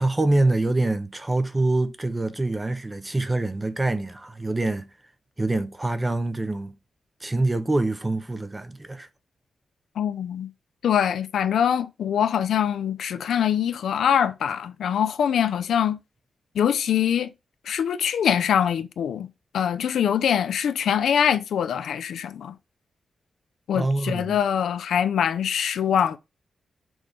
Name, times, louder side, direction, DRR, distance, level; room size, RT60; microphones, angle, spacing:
voice 1, 0.0-4.9 5.4-6.7 7.2-9.1 23.7-24.4, right 2 dB, 15° right, 0.6 m, -25 dB
voice 2, 10.0-10.5 10.8-16.0 16.5-17.3 17.7-19.3 19.5-22.5 23.7-26.2, left 8 dB, 85° left, 0.6 m, -23 dB
6.3 x 3.2 x 5.1 m
wide cardioid pair, 170°, 0 cm